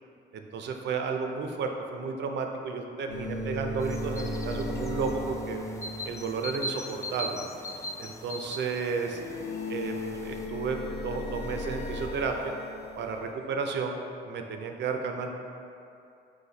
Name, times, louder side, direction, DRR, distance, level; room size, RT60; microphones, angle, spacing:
voice 1, 0.3-5.6 6.0-7.4 8.0-9.2 9.7-12.5 13.0-14.0 14.3-15.4, right 5 dB, 60° right, 4 dB, 0.4 m, -32 dB
sound 1, 3.1-6.6 8.9-13.3, left 1 dB, 55° left, 0.7 m, -36 dB
sound 2, 3.8-10.5, left 1 dB, 15° left, 0.3 m, -40 dB
4.1 x 2.6 x 3.9 m, 2.6 s
cardioid pair, 90°, 20 cm